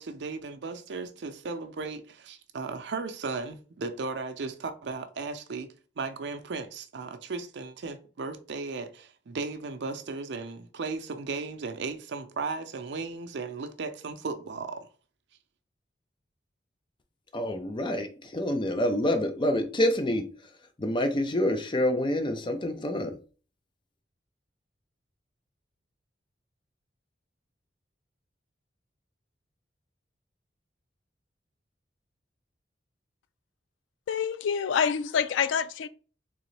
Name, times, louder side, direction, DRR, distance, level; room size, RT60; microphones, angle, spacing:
voice 1, 0.0-5.7 6.0-14.9, right 4 dB, 70° right, 0.5 m, -36 dB
voice 2, 17.3-20.5 20.8-23.2, left 1 dB, 25° left, 0.5 m, -27 dB
voice 3, 34.1-35.9, left 7 dB, 85° left, 0.3 m, -27 dB
3.8 x 3.0 x 3.2 m
head